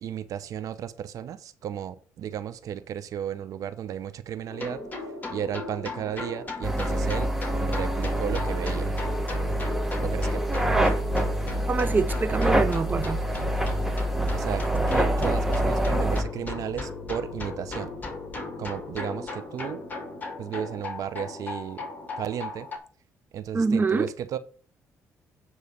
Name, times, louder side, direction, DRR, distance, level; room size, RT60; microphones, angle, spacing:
voice 1, 0.0-4.8 5.3-7.3 7.6-9.0 10.0-10.5 14.3-17.9 18.6-19.8 20.4-21.8 22.2-22.7 23.3-24.4, right 9 dB, 70° right, 0.7 m, -34 dB
sound 1, 4.5-22.8, left 3 dB, 30° left, 2.2 m, -36 dB
sound 2, 6.6-16.2, right 1 dB, 5° right, 1.3 m, -26 dB
voice 2, 11.7-13.2 23.5-24.1, right 4 dB, 30° right, 0.6 m, -25 dB
9.5 x 3.2 x 6.6 m
cardioid pair, 75°, 6 cm